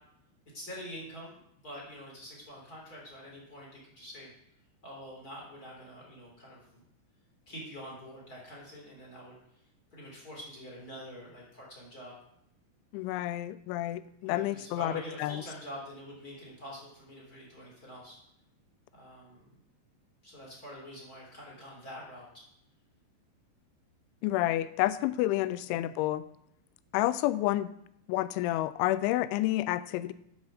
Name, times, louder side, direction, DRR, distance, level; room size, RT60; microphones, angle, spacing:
voice 1, 0.5-1.4 1.6-4.3 4.8-6.8 7.5-9.4 9.9-12.2 14.2-18.2 18.9-19.5 20.2-22.4 25.6-25.8, equal, 20° left, -4 dB, 3.6 m, -46 dB
voice 2, 12.9-14.9 15.2-15.4 24.2-26.2 26.9-27.7 28.1-30.1, left 15 dB, 90° left, 16 dB, 3.0 m, -29 dB
9.4 x 7.3 x 6.4 m, 0.75 s
omnidirectional pair, 5.3 m